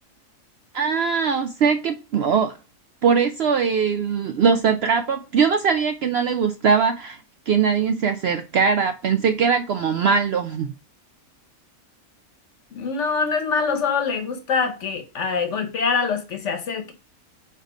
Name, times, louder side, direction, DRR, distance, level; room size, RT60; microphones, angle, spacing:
voice 1, 0.7-2.5 3.0-7.2 7.5-10.7, right 6 dB, 65° right, 0.6 m, -21 dB
voice 2, 12.7-16.9, left 5 dB, 60° left, 1.2 m, -24 dB
4.6 x 4.6 x 5.0 m
omnidirectional pair, 1.5 m